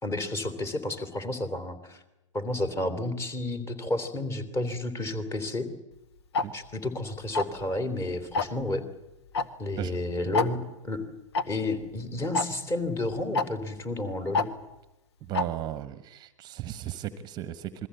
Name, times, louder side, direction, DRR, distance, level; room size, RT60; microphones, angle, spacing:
voice 1, 0.0-2.0 2.3-5.7 6.5-8.9 9.6-11.0 11.5-14.5, left 2 dB, 15° left, 11 dB, 3.2 m, -31 dB
Tick-tock, 6.3-6.5 7.3-7.6 8.3-8.6 9.3-9.5 9.7-9.8 10.3-10.5 11.3-11.4 12.3-12.5 13.3-13.5 14.3-14.5 15.3-15.5, left 3 dB, 55° left, 1.8 m, -25 dB
voice 2, 15.3-17.9, right 12 dB, 25° right, 14 dB, 1.3 m, -35 dB
27.5 x 22.0 x 8.4 m, 0.98 s
figure-of-eight pair, 110°, 17 cm